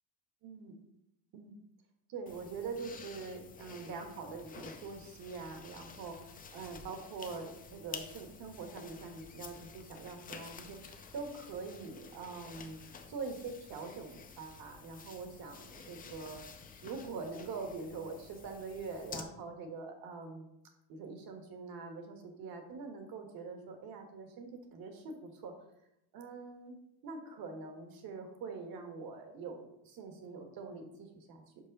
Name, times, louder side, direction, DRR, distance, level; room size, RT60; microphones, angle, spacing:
voice 1, 0.4-0.8 1.3-1.6 2.1-12.8 13.1-16.5 16.8-20.5 20.9-25.5 26.1-26.8 27.0-31.7, right 4 dB, 55° right, 5 dB, 1.5 m, -44 dB
sound 1, 2.3-19.2, left 5 dB, 20° left, 0.5 m, -51 dB
5.5 x 5.4 x 5.3 m, 0.83 s
cardioid pair, 150°, 44 cm